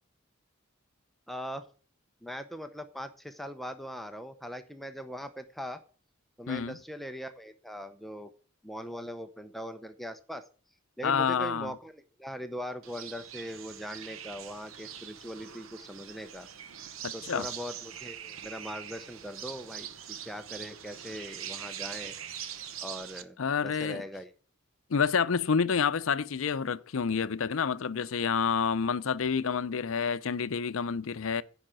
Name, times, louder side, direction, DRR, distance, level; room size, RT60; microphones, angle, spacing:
voice 1, 1.3-1.7 2.2-5.8 6.4-8.3 8.6-10.5 11.0-16.5 17.1-22.1 22.8-23.4 23.6-24.3, equal, ahead, 0.6 m, -40 dB
voice 2, 6.5-6.8 11.0-11.7 17.0-17.5 23.4-24.0 24.9-31.4, left 6 dB, 80° left, 0.5 m, -28 dB
sound 1, 12.8-23.2, right 9 dB, 85° right, 0.9 m, -43 dB
10.0 x 5.0 x 7.7 m
head